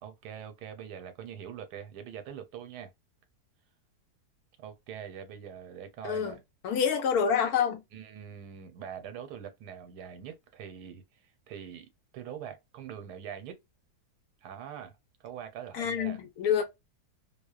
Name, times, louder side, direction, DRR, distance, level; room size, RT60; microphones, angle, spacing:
voice 1, 0.0-2.9 4.6-6.4 7.9-11.9 12.1-13.6 14.4-15.0 15.2-16.2, right 8 dB, 85° right, 1.2 m, -43 dB
voice 2, 6.0-6.4 6.6-7.8 15.7-16.6, left 7 dB, 70° left, 1.0 m, -27 dB
2.7 x 2.0 x 2.3 m
omnidirectional pair, 1.7 m